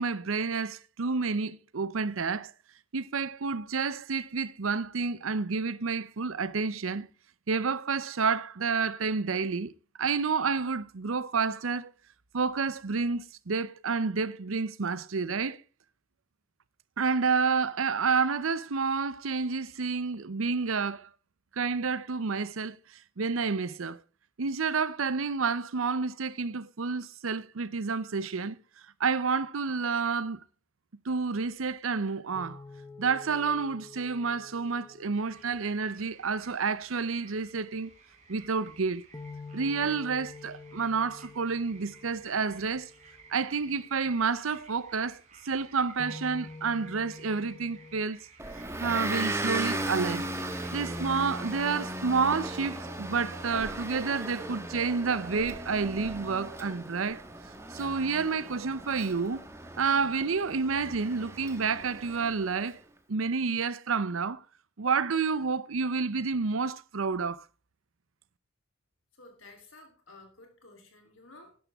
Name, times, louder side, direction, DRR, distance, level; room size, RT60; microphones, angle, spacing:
voice 1, 0.0-2.5 2.9-7.1 7.5-9.7 10.0-11.9 12.3-15.6 17.0-21.1 21.6-22.8 23.2-24.0 24.4-28.6 29.0-30.4 31.1-32.6 33.0-37.9 38.3-39.0 39.5-42.9 43.3-48.2 48.8-50.3 50.7-57.2 57.7-59.4 59.8-62.8 63.1-64.4 64.8-67.4, right 5 dB, 80° right, 0.7 m, -29 dB
sound 1, 32.3-36.5 39.1-43.3 46.0-48.0, left 3 dB, 20° left, 0.9 m, -47 dB
sound 2, 35.2-51.6, right 4 dB, 40° right, 3.7 m, -56 dB
Motor vehicle (road) / Engine, 48.4-62.6, right 1 dB, 15° right, 1.5 m, -37 dB
voice 2, 69.2-71.6, left 2 dB, 75° left, 3.6 m, -53 dB
12.0 x 10.5 x 3.6 m
head